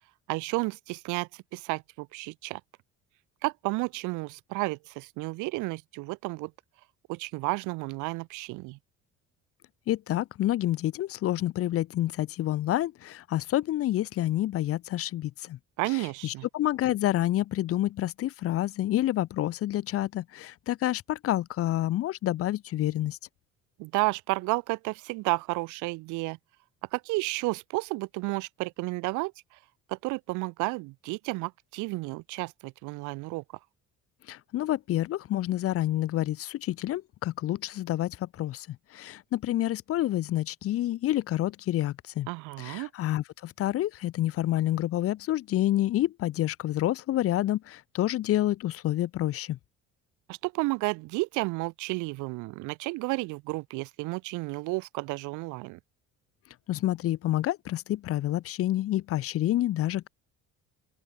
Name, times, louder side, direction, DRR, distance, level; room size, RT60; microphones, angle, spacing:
voice 1, 0.3-2.6 3.4-6.5 7.1-8.8 15.8-16.5 23.8-26.4 26.9-29.3 29.9-33.4 42.3-42.9 50.3-55.8, right 24 dB, 90° right, 4.8 m, -32 dB
voice 2, 9.9-15.6 15.9-23.2 34.3-42.3 42.6-49.6 56.7-60.1, left 14 dB, 50° left, 2.5 m, -28 dB
open air
cardioid pair, 165°, 29 cm